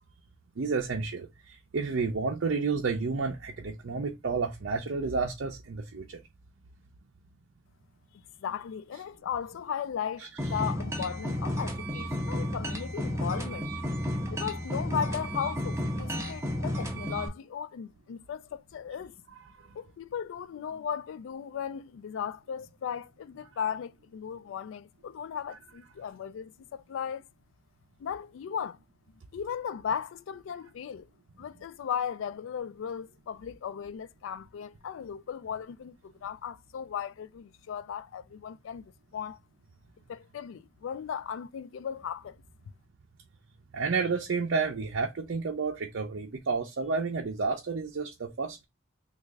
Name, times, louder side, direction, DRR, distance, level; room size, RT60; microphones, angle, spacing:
voice 1, 0.6-6.2 10.2-10.3 19.6-19.8 43.7-48.6, right 4 dB, 60° right, 0.5 m, -31 dB
voice 2, 8.4-13.7 14.3-19.1 19.7-27.2 28.0-28.8 29.3-31.1 31.4-39.4 40.1-42.4, left 8 dB, 70° left, 0.3 m, -36 dB
sound 1, 10.4-17.3, equal, 15° right, 0.7 m, -32 dB
3.1 x 2.4 x 3.4 m
head